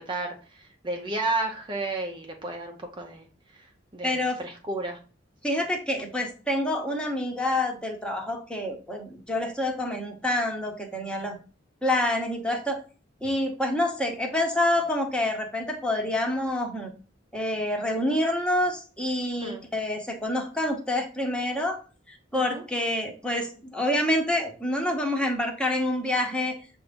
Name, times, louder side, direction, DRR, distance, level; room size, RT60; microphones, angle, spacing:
voice 1, 0.0-3.3 3.9-5.0 19.4-19.6 22.3-22.6, right 2 dB, 25° right, 2 dB, 0.6 m, -32 dB
voice 2, 4.0-4.4 5.4-11.4 11.8-12.8 13.2-16.9 17.3-21.8 22.1-26.5, left 1 dB, 5° left, 2 dB, 1.0 m, -27 dB
7.0 x 2.6 x 5.1 m, 0.36 s
head